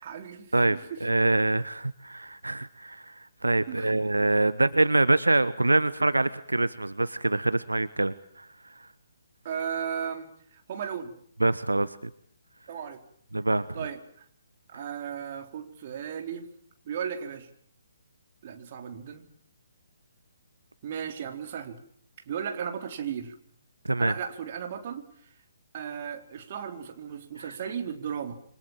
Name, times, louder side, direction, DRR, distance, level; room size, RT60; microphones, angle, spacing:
voice 1, 0.0-1.0 3.7-3.9 9.4-11.1 12.7-13.0 13.7-14.3 14.7-16.5 16.9-17.5 18.4-19.3 20.8-21.8 22.3-23.4 24.0-25.1 25.7-28.3, right 8 dB, 40° right, 6 dB, 4.0 m, -35 dB
voice 2, 0.5-8.5 11.4-12.0 13.3-13.8 23.9-24.1, right 2 dB, 75° right, 15 dB, 1.1 m, -25 dB
28.0 x 25.5 x 7.5 m, 0.63 s
figure-of-eight pair, 135°, 0 cm